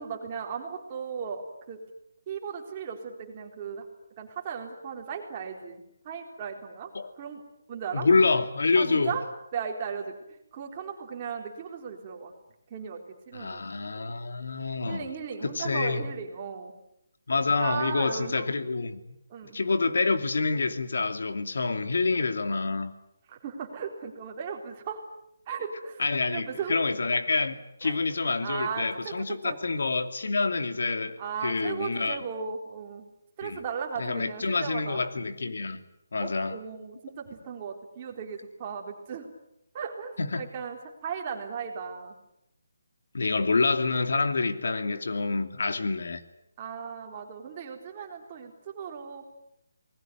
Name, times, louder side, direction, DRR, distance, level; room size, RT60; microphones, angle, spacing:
voice 1, 0.0-1.8 2.3-3.9 4.2-7.4 7.7-8.1 8.8-9.3 9.5-12.3 12.7-13.0 13.3-13.6 13.9-14.1 14.9-16.7 17.6-18.5 19.3-19.6 23.3-25.0 25.5-26.8 27.8-28.0 28.4-29.1 29.4-29.6 31.2-33.0 33.4-35.0 36.2-39.3 39.7-42.1 46.6-49.3, right 6 dB, 20° right, 4.0 m, -36 dB
voice 2, 7.9-9.2 13.3-15.1 15.4-16.0 17.3-19.2 19.5-22.9 26.0-32.2 33.4-33.6 34.0-35.8 36.1-36.6 40.2-40.5 43.1-46.2, left 3 dB, 70° left, 2.7 m, -27 dB
28.0 x 20.5 x 9.4 m
hypercardioid pair, 175°, 0 cm